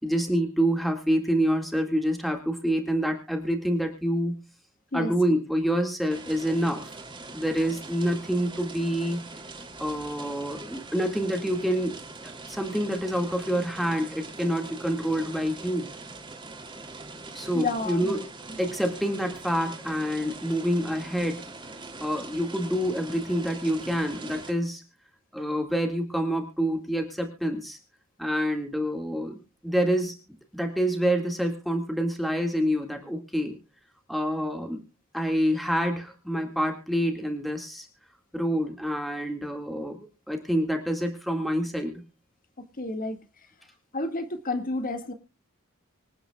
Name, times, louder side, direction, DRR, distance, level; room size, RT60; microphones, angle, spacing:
voice 1, 0.0-4.4 4.9-6.9 7.3-9.2 9.8-15.9 17.3-18.3 18.6-21.5 22.0-24.8 25.3-27.8 28.2-29.4 29.6-30.2 30.5-33.6 34.1-34.8 35.1-37.9 38.3-40.0 40.3-42.0, equal, ahead, 3 dB, 2.0 m, -27 dB
voice 2, 4.9-5.4 17.5-18.1 42.6-43.2 43.9-45.1, left 2 dB, 40° left, 7 dB, 2.0 m, -31 dB
sound 1, 6.1-24.5, right 3 dB, 25° right, 2.9 m, -42 dB
25.5 x 9.5 x 2.3 m, 0.30 s
head